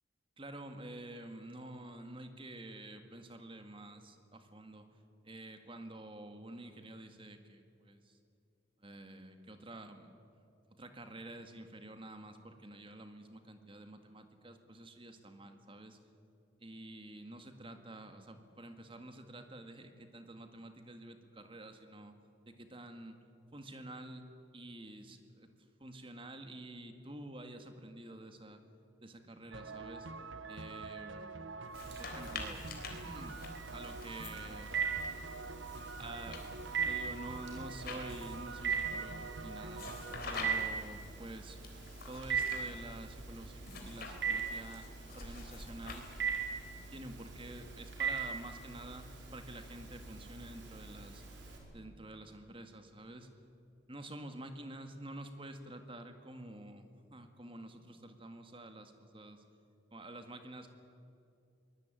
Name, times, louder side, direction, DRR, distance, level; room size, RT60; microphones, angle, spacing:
voice 1, 0.4-4.9 5.2-8.2 8.8-10.2 10.7-16.0 16.6-22.1 22.5-23.2 23.5-24.3 24.5-28.6 29.0-30.1 30.5-31.4 32.0-32.6 33.0-33.4 33.7-34.8 36.0-39.8 40.2-41.6 42.1-44.9 45.1-46.1 46.9-51.2 51.7-53.3 53.9-59.4 59.9-60.7, right 1 dB, 30° right, 7 dB, 1.8 m, -49 dB
sound 1, 29.5-40.6, right 4 dB, 85° right, 1.1 m, -46 dB
sound 2, 31.6-35.1 35.7-38.5 39.7-40.9 41.6-42.7 43.6-46.5, left 4 dB, 55° left, 3.8 m, -48 dB
Telephone, 31.7-51.6, right 6 dB, 70° right, 4.7 m, -40 dB
23.5 x 20.0 x 9.0 m, 2.6 s
head